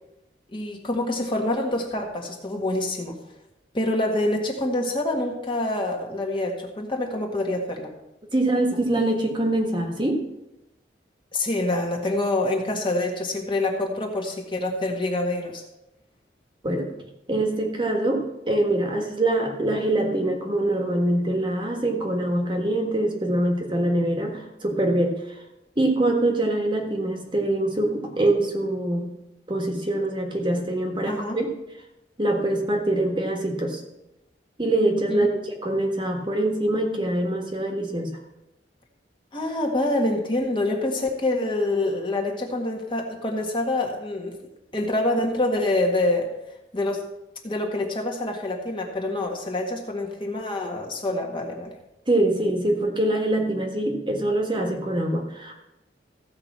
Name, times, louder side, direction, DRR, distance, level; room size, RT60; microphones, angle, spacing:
voice 1, 0.5-3.2 3.7-7.9 11.3-15.6 31.1-31.4 35.1-35.3 39.3-44.3 44.7-46.3 46.7-47.0 47.4-51.7, left 2 dB, 30° left, 1 dB, 1.7 m, -26 dB
voice 2, 8.3-10.3 16.6-16.9 17.3-25.4 25.8-29.1 29.5-31.5 32.2-33.8 34.6-38.2 52.1-55.5, right 1 dB, 25° right, 2 dB, 1.6 m, -24 dB
14.5 x 5.0 x 7.4 m, 0.91 s
head